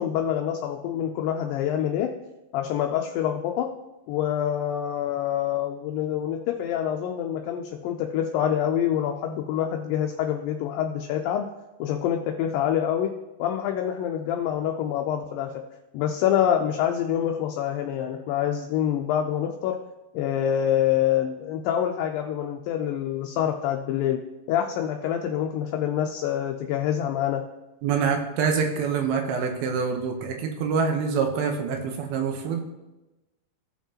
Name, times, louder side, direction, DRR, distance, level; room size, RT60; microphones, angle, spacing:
voice 1, 0.0-2.1 2.5-3.7 4.1-11.5 11.8-13.1 13.4-15.5 15.9-19.8 20.1-24.2 24.5-27.4, left 10 dB, 80° left, 3 dB, 2.2 m, -26 dB
voice 2, 27.8-32.6, right 6 dB, 85° right, 4 dB, 2.8 m, -26 dB
16.5 x 5.8 x 2.8 m, 1.0 s
omnidirectional pair, 4.2 m